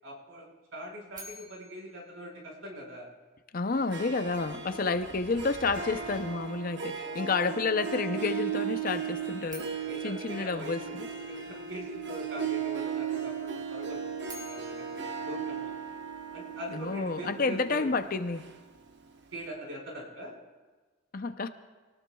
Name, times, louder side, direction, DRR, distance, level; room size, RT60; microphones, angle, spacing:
voice 1, 0.0-3.1 4.6-4.9 7.0-7.3 9.8-14.0 14.3-15.7 16.3-17.9 19.3-20.3, equal, 70° right, -2 dB, 5.1 m, -42 dB
sound 1, 1.1-3.3 9.4-11.6 14.0-16.4, equal, 20° right, 3.1 m, -51 dB
voice 2, 3.5-9.8 10.0-11.1 16.7-18.4 21.1-21.5, left 4 dB, 40° left, 10 dB, 0.6 m, -30 dB
Harp, 3.7-19.1, right 7 dB, 55° right, 1.0 m, -37 dB
sound 2, 4.0-6.6, left 1 dB, 70° left, 4.4 m, -52 dB
25.0 x 18.5 x 2.3 m, 1.3 s
head